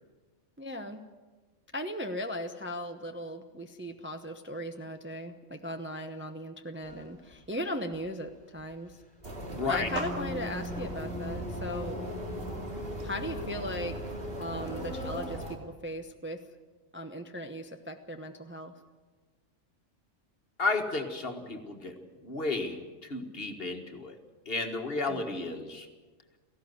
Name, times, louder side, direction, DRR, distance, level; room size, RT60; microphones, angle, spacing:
voice 1, 0.6-1.0 1.7-9.0 9.7-12.0 13.0-16.4 16.9-18.7 25.1-25.3, equal, 10° right, 5 dB, 0.8 m, -38 dB
sound 1, 6.8-7.1 7.3-15.2, left 2 dB, 5° left, 4.5 m, -41 dB
sound 2, 9.2-15.6, right 1 dB, 45° right, 2.7 m, -39 dB
voice 2, 9.5-9.9 20.6-22.0 22.2-22.8 23.1-24.2 24.5-25.9, left 3 dB, 45° left, 5 dB, 1.9 m, -32 dB
17.5 x 15.5 x 9.5 m, 1.3 s
omnidirectional pair, 1.4 m